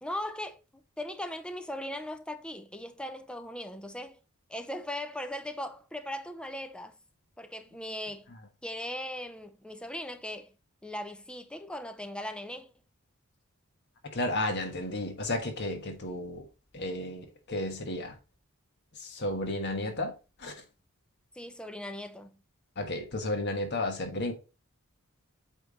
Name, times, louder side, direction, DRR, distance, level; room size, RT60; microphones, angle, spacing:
voice 1, 0.0-4.2 4.5-7.0 7.4-8.3 8.6-10.5 10.8-12.7 21.3-22.3, left 1 dB, 5° left, 0.6 m, -39 dB
voice 2, 14.1-16.5 16.7-18.2 18.9-20.1 20.4-20.6 22.8-24.3, left 1 dB, 50° left, 1.4 m, -33 dB
8.4 x 3.4 x 4.0 m
head